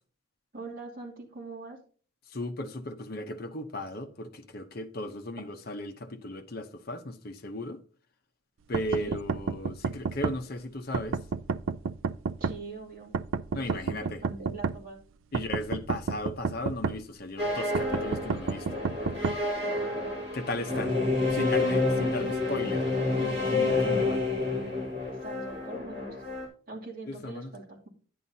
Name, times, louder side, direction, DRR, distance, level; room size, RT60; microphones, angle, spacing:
voice 1, 0.5-1.8 8.9-9.2 12.4-13.1 13.6-15.0 19.6-19.9 20.7-21.6 22.0-22.2 23.7-24.1 25.2-26.2 26.7-27.9, right 3 dB, 45° right, 2.6 m, -43 dB
voice 2, 2.3-7.8 8.7-11.2 13.5-14.2 15.3-18.7 20.3-22.8 23.1-24.3 27.1-27.5, left 1 dB, 50° left, 0.9 m, -36 dB
sound 1, 8.7-10.4 10.9-12.6 13.1-14.8 15.3-17.0 17.7-19.4, right 5 dB, 75° right, 0.4 m, -30 dB
sound 2, 17.4-26.5, left 3 dB, 30° right, 3.8 m, -29 dB
10.0 x 9.2 x 2.8 m
head